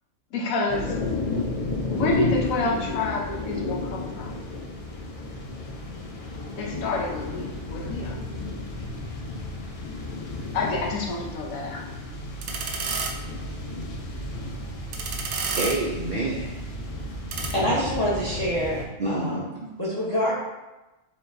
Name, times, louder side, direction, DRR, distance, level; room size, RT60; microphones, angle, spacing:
voice 1, 0.3-0.9 1.9-4.4 6.6-8.2 10.5-11.9, left 2 dB, 85° left, -1 dB, 1.2 m, -28 dB
sound 1, 0.7-18.8, left 3 dB, 60° left, 0.3 m, -33 dB
sound 2, 12.1-17.5, right 5 dB, 90° right, 1.0 m, -33 dB
voice 2, 15.1-16.6 19.0-19.7, right 2 dB, 65° right, -4 dB, 0.5 m, -29 dB
voice 3, 17.5-19.4 19.8-20.3, equal, 20° left, -6 dB, 0.7 m, -26 dB
4.5 x 3.5 x 2.6 m, 1.0 s
omnidirectional pair, 1.4 m